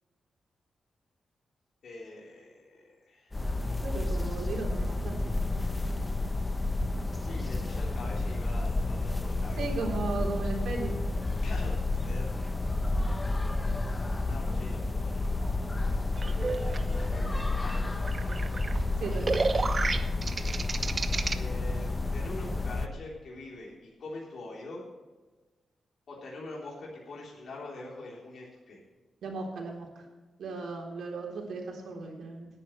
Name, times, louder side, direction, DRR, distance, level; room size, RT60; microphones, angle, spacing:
voice 1, 1.8-3.3 7.3-9.6 11.4-12.3 14.2-15.7 16.4-16.6 16.8-18.4 21.3-24.9 26.1-28.8, left 2 dB, 65° left, -4 dB, 3.6 m, -44 dB
sound 1, 3.3-22.9, left 2 dB, 20° left, 0.9 m, -30 dB
voice 2, 3.8-5.4 9.6-10.9 19.0-19.4 29.2-29.9 30.4-32.5, right 3 dB, 85° right, 0 dB, 3.7 m, -36 dB
sound 2, 16.2-21.3, right 3 dB, 35° right, 0.9 m, -32 dB
19.0 x 10.5 x 3.3 m, 1.3 s
wide cardioid pair, 120°, 0 cm